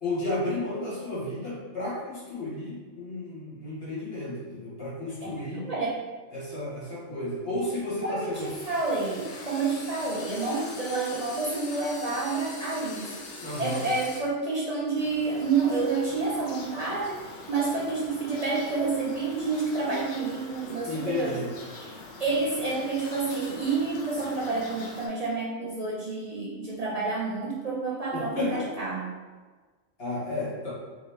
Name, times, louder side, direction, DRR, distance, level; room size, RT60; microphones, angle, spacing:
voice 1, 0.0-5.7 6.3-8.5 13.4-13.9 20.9-21.5 28.1-28.7 30.0-30.7, left 2 dB, 45° left, -9 dB, 1.9 m, -32 dB
voice 2, 5.6-6.0 8.0-13.2 13.6-21.4 21.7-21.9 22.2-29.1, right 3 dB, 60° right, -5 dB, 0.4 m, -29 dB
sound 1, 8.3-14.2 15.0-25.1, left 2 dB, 65° left, 0.9 m, -43 dB
3.4 x 3.0 x 3.4 m, 1.4 s
omnidirectional pair, 1.4 m